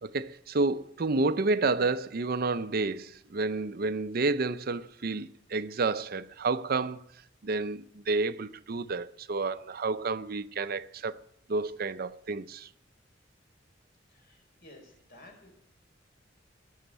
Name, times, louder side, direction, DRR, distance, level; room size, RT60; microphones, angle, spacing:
voice 1, 0.0-7.0 7.4-11.1 11.5-12.7, right 3 dB, 55° right, 0.6 m, -30 dB
voice 2, 14.1-15.5, left 1 dB, 55° left, 5.0 m, -54 dB
18.0 x 6.5 x 9.2 m
head